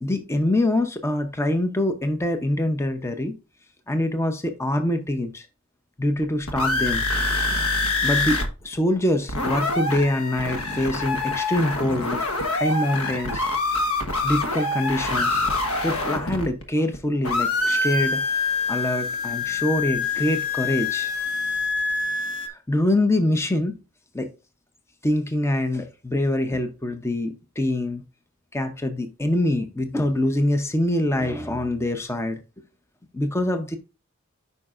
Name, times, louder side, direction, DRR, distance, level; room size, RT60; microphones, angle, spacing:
voice 1, 0.0-3.4 3.9-5.5 6.0-7.0 7.5-7.6 8.0-12.2 12.5-13.5 14.2-15.4 15.8-18.2 18.7-21.1 22.5-23.8 24.1-24.3 25.0-28.0 28.5-32.4 33.1-33.8, left 1 dB, 10° left, 0.7 m, -24 dB
sound 1, 6.2-8.5 8.7-8.8 9.1-17.0 17.2-22.5, left 3 dB, 80° left, 1.2 m, -25 dB
9.1 x 5.5 x 2.5 m
head